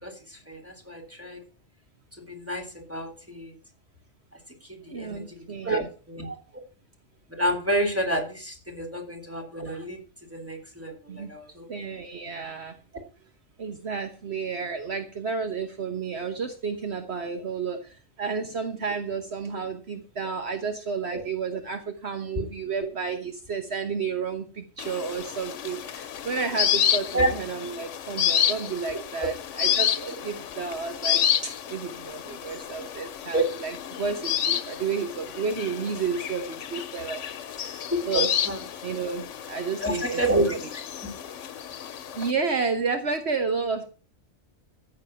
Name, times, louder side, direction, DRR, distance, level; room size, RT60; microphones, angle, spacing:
voice 1, 0.0-1.4 2.2-3.5 4.7-6.4 7.3-10.0 10.3-11.7 21.1-21.2 22.4-22.5 27.1-27.3 33.3-33.4 37.9-38.0 38.5-38.6 39.8-40.6, right 1 dB, 10° right, 2 dB, 3.5 m, -29 dB
voice 2, 4.9-5.9 11.1-11.3 11.7-12.7 13.6-17.8 18.2-24.4 24.8-37.2 38.1-38.3 38.8-39.2 39.5-40.2 40.5-40.6 42.2-43.9, right 5 dB, 65° right, 7 dB, 1.5 m, -31 dB
sound 1, 24.8-42.3, left 10 dB, 90° left, 1.1 m, -30 dB
14.5 x 7.6 x 5.8 m, 0.37 s
omnidirectional pair, 1.2 m